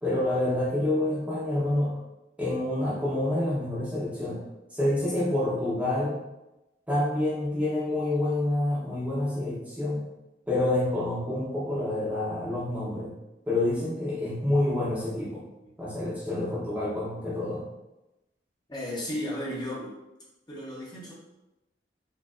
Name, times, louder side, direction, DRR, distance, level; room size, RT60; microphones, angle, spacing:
voice 1, 0.0-1.9 2.4-4.4 4.7-6.2 6.9-10.1 10.5-13.1 13.5-15.4 15.8-17.6, left 1 dB, 5° right, -8 dB, 0.9 m, -27 dB
voice 2, 18.7-19.9 20.5-21.1, left 1 dB, 25° left, -7 dB, 1.0 m, -34 dB
4.7 x 2.6 x 2.4 m, 0.98 s
head